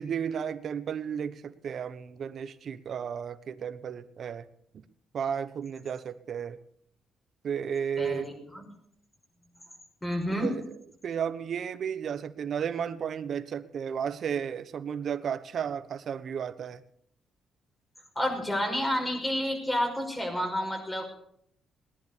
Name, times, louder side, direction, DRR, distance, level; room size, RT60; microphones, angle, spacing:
voice 1, 0.0-4.4 5.1-6.6 7.4-8.3 10.3-10.8 11.0-16.8, right 7 dB, 60° right, 13 dB, 1.1 m, -33 dB
voice 2, 8.0-8.6 10.0-10.5 18.2-21.0, equal, 15° left, 3 dB, 5.7 m, -30 dB
18.5 x 11.0 x 6.9 m, 0.70 s
cardioid pair, 90°, 0 cm